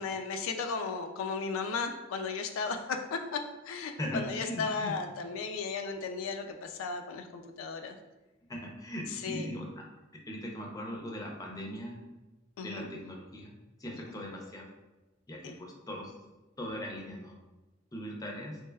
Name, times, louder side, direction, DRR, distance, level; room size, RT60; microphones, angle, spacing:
voice 1, 0.0-8.0 9.2-9.5 12.6-12.9 15.4-15.6, left 4 dB, 90° left, 5 dB, 0.3 m, -35 dB
voice 2, 4.0-5.0 8.5-9.8 10.3-12.0 12.6-13.5 13.8-14.6 15.3-16.1 16.6-17.3 17.9-18.6, equal, 20° left, 0 dB, 0.5 m, -39 dB
3.2 x 3.1 x 2.2 m, 1.1 s
head